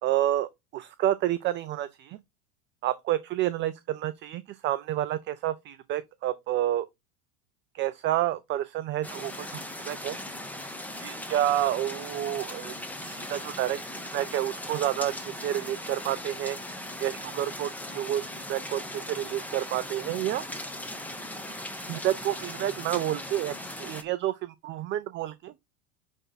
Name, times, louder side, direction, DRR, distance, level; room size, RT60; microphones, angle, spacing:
voice 1, 0.0-2.2 2.8-6.9 7.7-10.2 11.0-12.7 13.0-16.6 17.0-20.4 21.9-25.5, right 13 dB, 25° right, 0.5 m, -29 dB
sound 1, 9.0-24.0, left 1 dB, 5° left, 1.4 m, -39 dB
8.9 x 3.6 x 4.1 m
hypercardioid pair, 105°, 44 cm